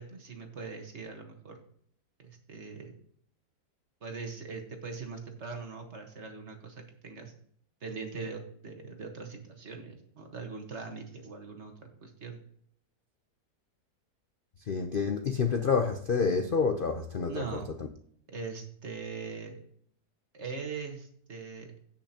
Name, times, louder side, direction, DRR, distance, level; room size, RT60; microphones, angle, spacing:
voice 1, 0.0-1.6 2.2-2.9 4.0-7.3 7.8-12.4 17.3-17.7 18.3-19.6 20.3-21.8, right 4 dB, 45° right, 3 dB, 1.6 m, -41 dB
voice 2, 14.7-17.6, left 5 dB, 50° left, 5 dB, 0.6 m, -28 dB
17.0 x 5.8 x 2.9 m, 0.66 s
omnidirectional pair, 1.8 m